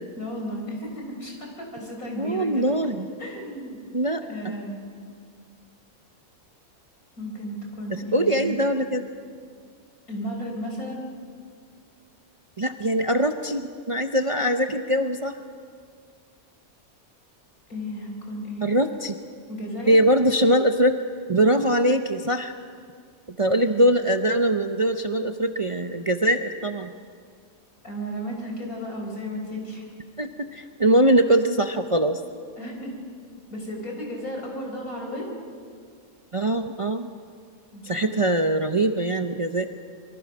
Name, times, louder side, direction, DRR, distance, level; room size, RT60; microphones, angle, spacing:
voice 1, 0.2-2.7 3.2-3.8 4.3-4.9 7.2-8.6 10.1-11.0 17.7-18.8 19.5-20.0 23.6-23.8 27.8-29.9 32.6-33.0 33.5-35.3 37.7-38.3, equal, 85° left, 1 dB, 5.2 m, -34 dB
voice 2, 2.2-3.1 3.9-4.6 7.9-9.0 12.6-15.4 18.6-19.1 19.9-21.0 21.3-22.5 23.4-26.9 30.2-32.2 36.3-37.1 37.8-39.7, right 1 dB, 30° right, 6 dB, 0.6 m, -22 dB
26.0 x 23.5 x 6.1 m, 2.1 s
omnidirectional pair, 1.5 m